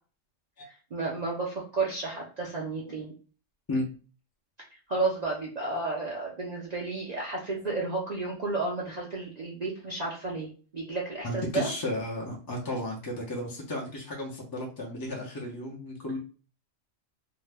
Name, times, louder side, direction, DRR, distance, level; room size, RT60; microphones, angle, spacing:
voice 1, 0.6-3.1 4.9-11.7, right 3 dB, 55° right, -3 dB, 0.4 m, -32 dB
voice 2, 11.2-16.2, left 1 dB, 35° left, -1 dB, 0.3 m, -33 dB
2.7 x 2.1 x 3.3 m, 0.37 s
omnidirectional pair, 1.4 m